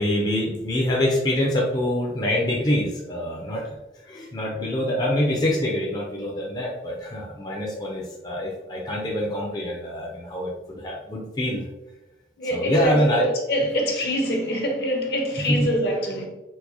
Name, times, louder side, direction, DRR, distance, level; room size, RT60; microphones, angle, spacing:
voice 1, 0.0-3.8 4.0-11.7 12.5-13.3 15.4-15.8, left 1 dB, 25° left, 0.5 m, -25 dB
voice 2, 12.4-16.3, equal, 65° left, 0.8 m, -24 dB
4.5 x 2.1 x 2.7 m
head